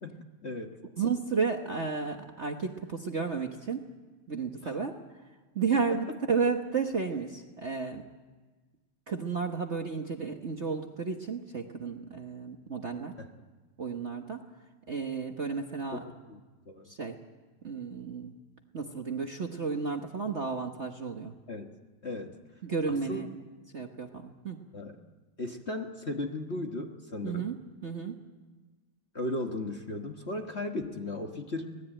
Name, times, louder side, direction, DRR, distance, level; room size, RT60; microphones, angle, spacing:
voice 1, 0.0-0.8 4.6-4.7 5.9-6.0 13.2-13.3 15.9-16.4 16.7-16.9 21.5-21.8 22.0-22.4 23.1-23.2 24.7-25.0 25.4-27.5 29.1-31.8, left 2 dB, 35° left, 3 dB, 1.5 m, -36 dB
voice 2, 1.0-3.8 4.3-5.0 5.5-8.0 9.1-13.1 13.8-14.4 14.9-16.0 16.8-17.2 17.6-18.3 18.7-21.3 22.6-23.3 23.7-24.6 27.2-27.6 27.8-28.1, right 5 dB, 40° right, 4 dB, 1.2 m, -32 dB
25.5 x 19.0 x 9.0 m, 1.3 s
omnidirectional pair, 2.4 m